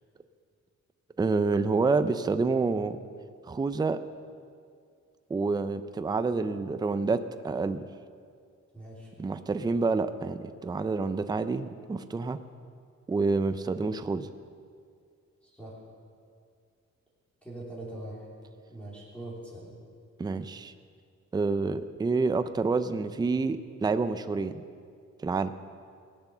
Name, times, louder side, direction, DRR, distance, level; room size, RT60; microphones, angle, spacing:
voice 1, 1.2-3.0 3.5-4.0 5.3-7.2 7.4-7.8 9.2-12.4 13.1-14.3 20.2-20.7 21.3-24.6 25.2-25.5, right 4 dB, 15° right, 11 dB, 0.4 m, -28 dB
voice 2, 8.7-9.1 15.4-15.8 17.4-18.3 18.7-19.7, right 1 dB, 5° left, -6 dB, 3.1 m, -42 dB
18.0 x 8.3 x 6.7 m, 2.2 s
wide cardioid pair, 165°, 29 cm